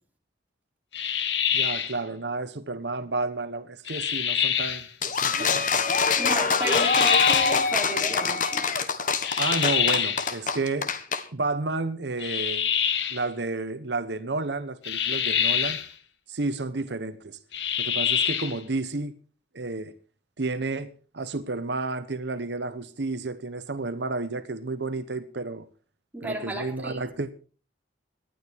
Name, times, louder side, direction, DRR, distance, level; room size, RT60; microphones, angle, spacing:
sound 1, 0.9-2.0 3.9-4.9 6.6-7.6 9.2-10.3 12.2-13.2 14.8-15.9 17.5-18.6, left 8 dB, 85° left, 1.5 m, -26 dB
voice 1, 1.5-5.6 9.4-10.9 11.3-12.7 13.1-15.8 16.3-17.4 17.8-19.1 19.5-19.9 20.4-20.9 21.1-25.7 26.2-27.4, right 3 dB, 75° right, 1.0 m, -31 dB
sound 2, 5.0-11.2, left 5 dB, 50° left, 1.5 m, -24 dB
voice 2, 6.2-8.7 26.1-27.0, right 1 dB, 10° right, 3.5 m, -33 dB
19.5 x 12.0 x 4.6 m
head